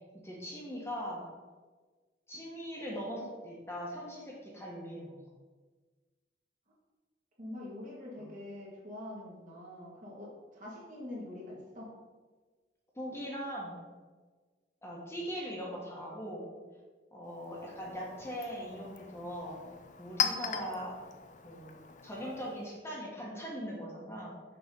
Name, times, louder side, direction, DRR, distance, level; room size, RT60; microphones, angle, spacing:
voice 1, 0.1-1.3 2.3-5.2 8.2-8.3 12.9-13.9 14.8-16.5 17.1-19.6 20.0-21.0 21.4-24.3, equal, 15° left, -4 dB, 1.4 m, -40 dB
voice 2, 7.4-11.9, left 1 dB, 45° right, -4 dB, 2.0 m, -44 dB
Chink clink, 17.3-22.8, left 7 dB, 45° left, 0.5 m, -39 dB
6.6 x 4.0 x 5.3 m, 1.3 s
head